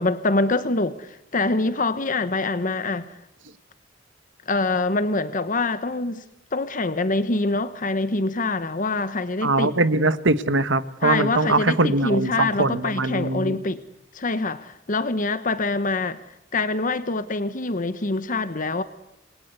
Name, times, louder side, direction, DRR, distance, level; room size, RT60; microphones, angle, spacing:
voice 1, 0.0-3.1 4.5-6.2 6.5-9.8 11.0-13.8 14.1-16.2 16.5-18.8, left 3 dB, 45° left, 12 dB, 1.1 m, -25 dB
voice 2, 9.4-13.6, right 2 dB, 80° right, 13 dB, 1.4 m, -22 dB
28.0 x 22.0 x 8.1 m, 0.87 s
head